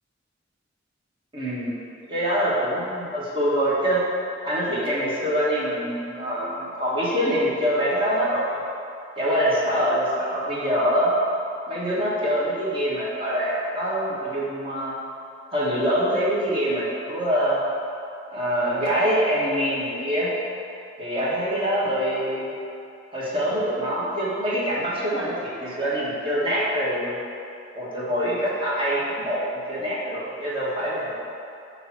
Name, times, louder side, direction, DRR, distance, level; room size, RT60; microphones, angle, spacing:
voice 1, 1.3-1.7 2.1-4.0 4.5-8.6 9.2-11.1 11.7-15.0 15.5-17.6 18.3-20.3 21.0-22.5 23.1-27.2 27.8-29.4 29.7-31.2, equal, 30° right, -8 dB, 1.8 m, -24 dB
9.0 x 3.0 x 6.0 m, 2.6 s
head